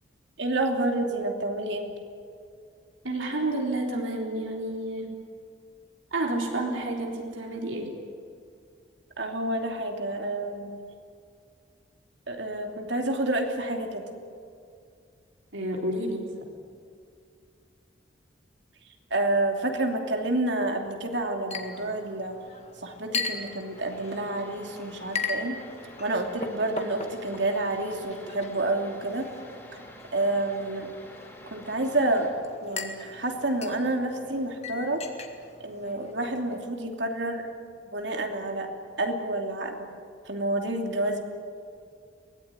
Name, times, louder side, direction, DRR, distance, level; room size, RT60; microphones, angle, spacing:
voice 1, 0.4-1.9 9.2-10.8 12.3-14.0 19.1-22.4 22.8-25.6 26.0-29.3 30.1-30.9 31.5-32.3 32.6-35.0 35.6-37.5 37.9-38.7 39.0-39.9 40.3-41.3, right 2 dB, 70° right, 3 dB, 2.8 m, -29 dB
voice 2, 3.0-5.1 6.1-7.9 15.5-16.3, right 1 dB, 85° right, 0 dB, 3.8 m, -30 dB
Chink clink, 21.5-36.6, left 4 dB, 35° left, 1.9 m, -39 dB
sound 1, 23.2-32.3, left 1 dB, 10° left, 4.4 m, -49 dB
23.0 x 19.0 x 9.6 m, 2.3 s
head